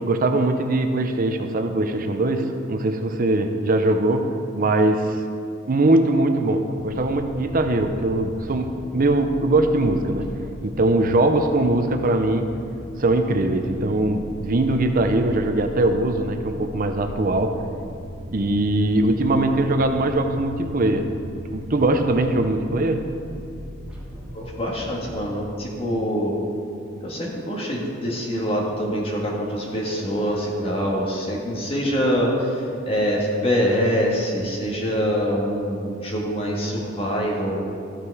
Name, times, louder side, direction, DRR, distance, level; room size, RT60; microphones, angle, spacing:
voice 1, 0.0-5.2 5.7-10.3 10.6-12.5 13.0-17.6 18.3-21.1 21.5-23.1, right 2 dB, 45° right, 6 dB, 0.6 m, -21 dB
sound 1, 6.8-25.1, equal, 5° right, 1.8 m, -37 dB
voice 2, 24.3-26.3 27.0-37.6, equal, 30° left, -3 dB, 1.7 m, -24 dB
14.0 x 5.9 x 4.8 m, 2.4 s
head